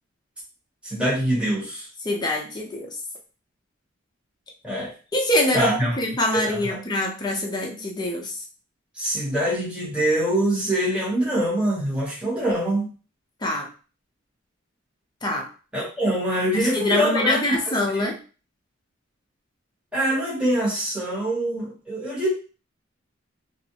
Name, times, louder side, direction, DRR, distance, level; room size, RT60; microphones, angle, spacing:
voice 1, 0.8-1.9 4.6-4.9 5.5-6.0 6.3-6.8 9.0-12.9 15.7-18.0 19.9-22.3, right 1 dB, 5° right, -7 dB, 1.0 m, -24 dB
voice 2, 2.0-2.9 5.1-8.4 13.4-13.7 15.2-15.5 16.5-18.2, left 1 dB, 20° left, 0 dB, 0.6 m, -25 dB
2.4 x 2.0 x 2.8 m, 0.35 s
head